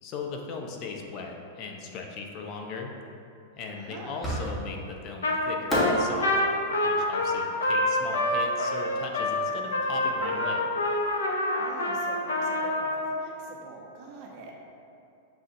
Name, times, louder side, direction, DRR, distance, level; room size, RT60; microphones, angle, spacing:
voice 1, 0.0-2.9 3.6-6.5 6.8-10.6, left 4 dB, 45° left, 2 dB, 0.6 m, -38 dB
voice 2, 3.7-4.2 11.6-14.5, right 3 dB, 50° right, -1 dB, 0.8 m, -44 dB
Fireworks, 4.2-4.9 5.7-8.8, equal, 15° left, 1.2 m, -32 dB
Trumpet, 5.2-5.4 5.7-13.1, left 1 dB, 90° left, 0.5 m, -27 dB
7.0 x 2.5 x 2.6 m, 2.7 s
hypercardioid pair, 110°, 0 cm